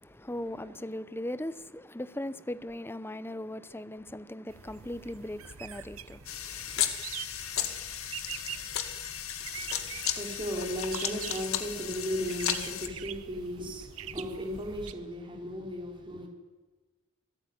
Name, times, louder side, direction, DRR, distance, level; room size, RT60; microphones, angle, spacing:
voice 1, 0.0-6.9, left 1 dB, 10° left, 0.8 m, -39 dB
sound 1, 4.5-14.9, right 9 dB, 75° right, 1.2 m, -44 dB
sound 2, 6.3-12.9, left 10 dB, 75° left, 2.2 m, -34 dB
voice 2, 9.5-16.3, equal, 25° right, 4.2 m, -36 dB
27.0 x 18.0 x 9.6 m
head